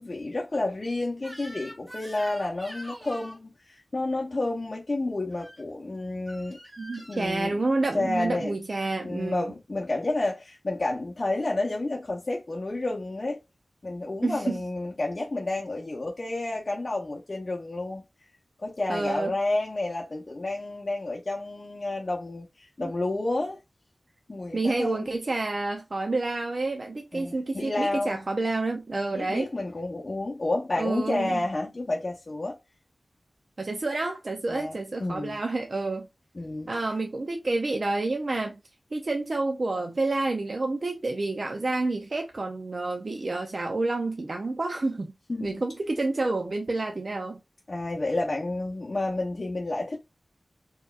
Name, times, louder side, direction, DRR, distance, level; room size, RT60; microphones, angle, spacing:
voice 1, 0.0-6.6 7.0-7.6 7.9-8.5 9.0-13.4 13.8-18.0 18.6-23.6 24.3-25.0 27.1-28.2 29.1-32.6 34.5-35.4 36.4-36.7 45.3-45.6 47.7-50.0, left 2 dB, 50° left, 0.8 m, -30 dB
Crying sobbing / Screech, 1.2-3.4 5.3-5.6 6.3-7.2, equal, 15° right, 1.5 m, -44 dB
voice 2, 6.8-9.5 14.2-14.6 18.9-19.3 22.8-22.9 24.5-29.5 30.8-31.4 33.6-36.1 36.7-38.6 38.9-45.1 45.4-47.4, right 2 dB, 55° right, 0.6 m, -29 dB
4.6 x 3.0 x 2.4 m
wide cardioid pair, 80°, 0 cm